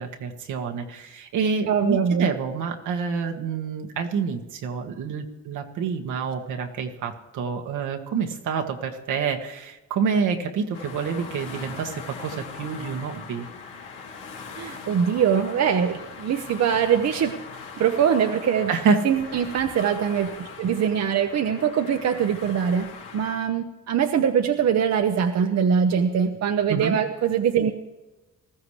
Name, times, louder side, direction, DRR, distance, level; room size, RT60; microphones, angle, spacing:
voice 1, 0.0-13.5 18.7-19.0 26.7-27.0, right 6 dB, 80° right, 4 dB, 1.7 m, -27 dB
voice 2, 1.7-2.3 14.6-17.3 17.8-18.7 19.0-22.9 23.1-27.7, right 7 dB, 60° right, 5 dB, 1.0 m, -22 dB
sound 1, 10.7-23.4, left 5 dB, 85° left, 3.0 m, -40 dB
19.5 x 14.5 x 3.3 m, 1.1 s
cardioid pair, 90°, 30 cm